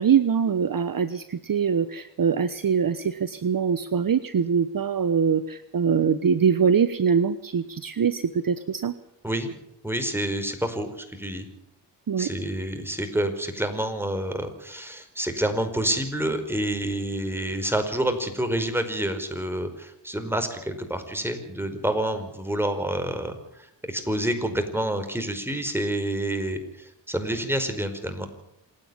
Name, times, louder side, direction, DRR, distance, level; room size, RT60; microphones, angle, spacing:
voice 1, 0.0-8.9 12.1-12.3, right 7 dB, 45° right, 13 dB, 1.1 m, -23 dB
voice 2, 9.8-11.5 12.2-28.3, right 1 dB, 5° right, 6 dB, 5.0 m, -28 dB
27.5 x 9.7 x 9.9 m, 0.78 s
cardioid pair, 60°, 47 cm